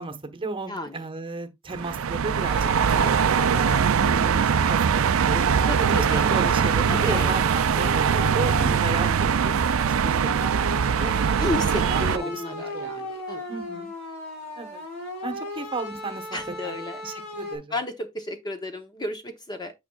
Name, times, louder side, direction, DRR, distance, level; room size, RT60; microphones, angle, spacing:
voice 1, 0.0-5.5 5.8-11.1 11.8-13.1 13.5-13.9 14.6-14.8 15.2-16.3 16.6-16.8 17.0-17.6, right 3 dB, 25° right, 1.1 m, -35 dB
voice 2, 0.7-1.0 5.7-6.2 6.9-7.3 11.4-13.5 16.3-17.0 17.7-19.7, left 1 dB, 20° left, 0.8 m, -32 dB
sound 1, 1.7-12.2, right 7 dB, 65° right, 0.4 m, -22 dB
sound 2, 2.4-17.6, left 1 dB, 75° left, 3.4 m, -36 dB
9.1 x 5.4 x 2.3 m
head